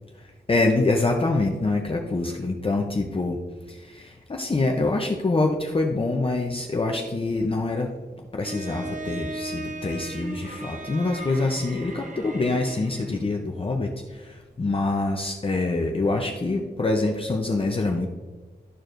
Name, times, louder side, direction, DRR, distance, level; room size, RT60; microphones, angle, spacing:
voice 1, 0.5-3.4 3.7-7.9 8.3-18.1, left 2 dB, 30° left, 1 dB, 0.6 m, -25 dB
Bowed string instrument, 8.4-13.3, right 1 dB, 45° right, 0.9 m, -37 dB
12.5 x 4.6 x 2.5 m, 1.4 s
wide cardioid pair, 120°, 18 cm